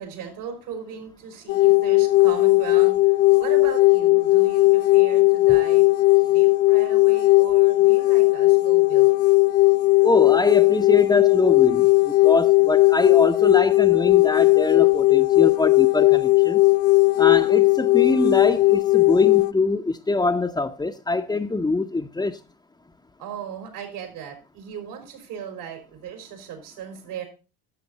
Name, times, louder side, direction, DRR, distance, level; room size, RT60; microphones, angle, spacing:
voice 1, 0.0-3.0 3.4-5.9 6.2-9.1 23.2-27.2, right 8 dB, 80° right, 4.1 m, -37 dB
sound 1, 1.5-19.5, left 21 dB, 85° left, 0.6 m, -17 dB
voice 2, 10.0-16.6 17.2-22.4, left 2 dB, 10° left, 0.6 m, -24 dB
11.5 x 7.0 x 4.0 m
supercardioid pair, 80°, 40 cm